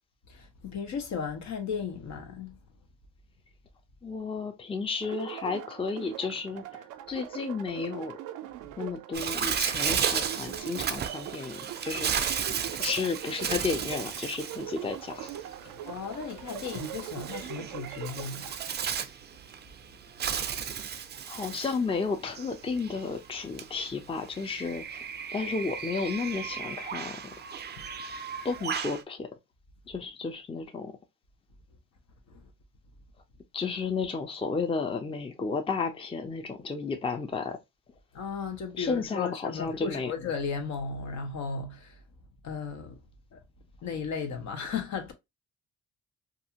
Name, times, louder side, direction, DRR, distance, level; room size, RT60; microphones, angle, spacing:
voice 1, 0.3-2.6 15.8-18.6 38.1-42.0 42.4-43.0 43.3-43.4 43.8-45.1, left 5 dB, 65° left, 0.9 m, -35 dB
voice 2, 4.0-8.2 8.8-12.4 12.7-15.3 21.3-25.0 25.3-27.3 28.4-29.3 29.9-30.9 33.5-37.6 38.8-40.1, left 4 dB, 20° left, 0.5 m, -33 dB
sound 1, 5.0-18.7, right 12 dB, 90° right, 0.5 m, -42 dB
Bird, 9.1-29.0, right 7 dB, 35° right, 0.4 m, -34 dB
2.6 x 2.4 x 2.7 m
cardioid pair, 90°, 30 cm